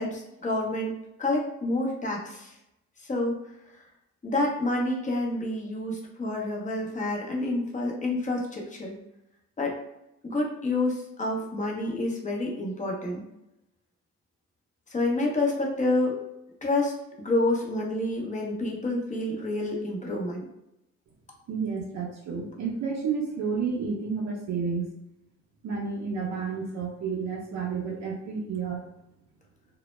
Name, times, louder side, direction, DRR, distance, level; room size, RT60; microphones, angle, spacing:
voice 1, 0.0-2.5 3.0-3.4 3.7-3.8 4.2-8.9 9.6-9.8 10.2-13.2 14.9-16.2 16.6-20.5, left 2 dB, 25° left, -1 dB, 0.7 m, -28 dB
voice 2, 21.5-24.9 25.6-28.8, right 5 dB, 65° right, -2 dB, 0.6 m, -31 dB
2.1 x 2.0 x 3.1 m, 0.86 s
cardioid pair, 90°, 30 cm